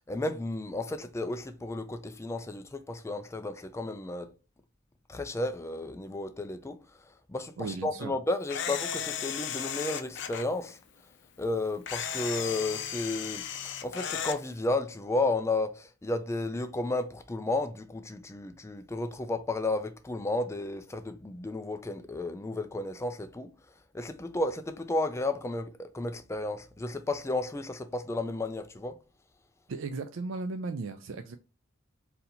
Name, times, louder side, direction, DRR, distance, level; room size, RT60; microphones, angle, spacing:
voice 1, 0.1-4.3 5.1-6.8 7.3-10.8 11.4-23.5 23.9-29.0, left 2 dB, 15° left, 0.3 m, -33 dB
voice 2, 7.6-8.1 29.7-31.4, right 3 dB, 70° right, 0.4 m, -36 dB
Camera, 8.5-10.4 11.9-14.4, left 8 dB, 60° left, 0.5 m, -35 dB
4.2 x 2.7 x 3.8 m
head